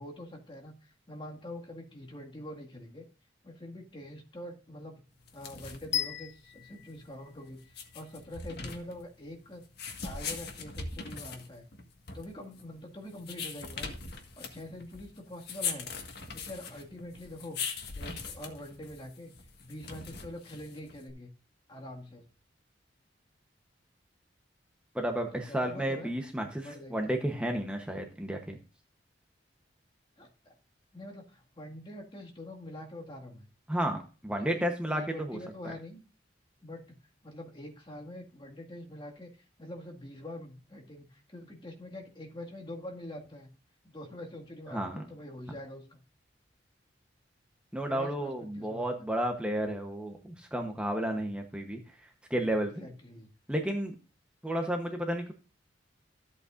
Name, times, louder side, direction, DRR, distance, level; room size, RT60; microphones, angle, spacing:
voice 1, 0.0-3.0 3.4-5.0 5.3-9.6 10.0-11.7 12.1-14.0 14.4-15.9 16.3-17.6 17.9-19.3 19.6-21.3 21.7-22.3 25.3-26.2 26.6-27.3 30.2-30.5 30.9-33.5 34.4-36.0 36.6-36.9 37.2-43.5 43.8-46.0 47.9-49.1 52.4-53.3, left 1 dB, 30° left, 0 dB, 1.9 m, -45 dB
sound 1, 5.2-21.1, left 5 dB, 60° left, 1.7 m, -41 dB
sound 2, 5.9-8.0, left 10 dB, 85° left, 0.8 m, -36 dB
voice 2, 24.9-28.6 33.7-35.4 35.6-35.7 44.7-45.0 47.7-51.8 52.3-52.9 53.5-53.9 54.4-55.3, right 1 dB, 5° right, 3 dB, 0.9 m, -32 dB
13.5 x 8.3 x 2.5 m, 0.35 s
head